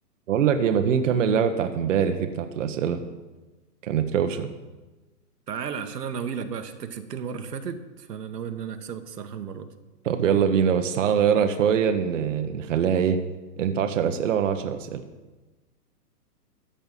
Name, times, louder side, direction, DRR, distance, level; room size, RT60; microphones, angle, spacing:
voice 1, 0.3-3.0 3.8-4.5 10.0-13.2 13.6-15.0, right 7 dB, 50° right, 7 dB, 1.1 m, -23 dB
voice 2, 5.5-9.7, right 7 dB, 80° right, 8 dB, 1.4 m, -34 dB
14.0 x 5.7 x 9.1 m, 1.2 s
hypercardioid pair, 160°, 48 cm